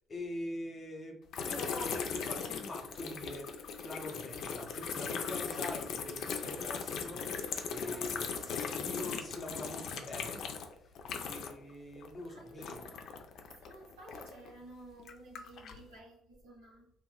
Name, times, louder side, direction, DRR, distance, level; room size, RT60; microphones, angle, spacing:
voice 1, 0.1-3.5 3.8-10.5 11.2-12.9, left 1 dB, 35° left, 2 dB, 0.9 m, -44 dB
sound 1, 1.3-11.7 12.0-14.5 15.0-15.8, left 6 dB, 65° left, 0.4 m, -39 dB
voice 2, 6.3-7.2 7.8-8.4 11.1-11.5 12.3-13.1 13.5-16.9, right 1 dB, 85° right, -2 dB, 1.0 m, -54 dB
2.9 x 2.8 x 2.2 m, 0.75 s
hypercardioid pair, 60°, 0 cm